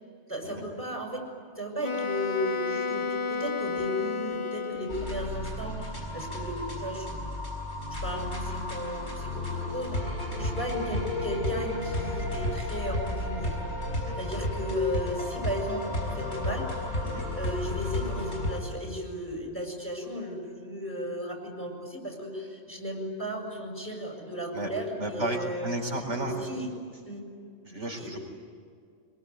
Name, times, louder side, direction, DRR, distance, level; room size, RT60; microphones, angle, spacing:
voice 1, 0.3-1.3 1.5-7.2 8.0-13.6 14.2-16.7 17.4-25.8 26.2-26.7 27.1-27.2 28.0-28.2, equal, 10° left, 0 dB, 6.8 m, -35 dB
Wind instrument woodwind instrument, 1.8-5.4, left 5 dB, 30° left, 0.8 m, -32 dB
sound 1, 4.9-18.6, left 1 dB, 65° left, 5.8 m, -32 dB
voice 2, 25.0-26.3 27.6-28.2, right 1 dB, 70° right, 1 dB, 4.7 m, -33 dB
25.0 x 23.0 x 9.6 m, 2.2 s
omnidirectional pair, 1.3 m